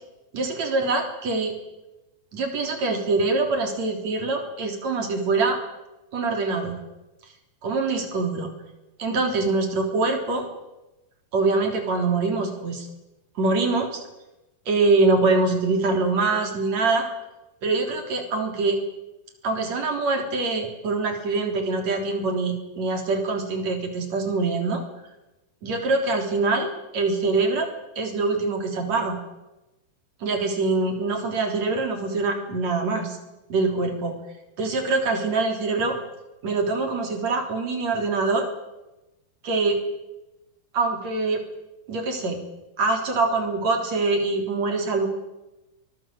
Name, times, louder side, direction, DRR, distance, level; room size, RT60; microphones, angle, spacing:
voice 1, 0.3-1.5 2.3-5.6 6.1-6.8 7.6-8.5 9.0-10.4 11.3-12.9 13.4-14.0 14.7-17.1 17.6-18.8 19.4-24.8 25.6-26.7 26.9-27.7 28.0-29.2 30.2-33.2 33.5-34.2 34.6-36.0 36.4-38.5 39.4-39.8 40.7-41.4 41.9-42.4 42.8-45.1, right 3 dB, 45° right, 4 dB, 4.4 m, -24 dB
23.5 x 20.5 x 7.7 m, 0.99 s
omnidirectional pair, 4.8 m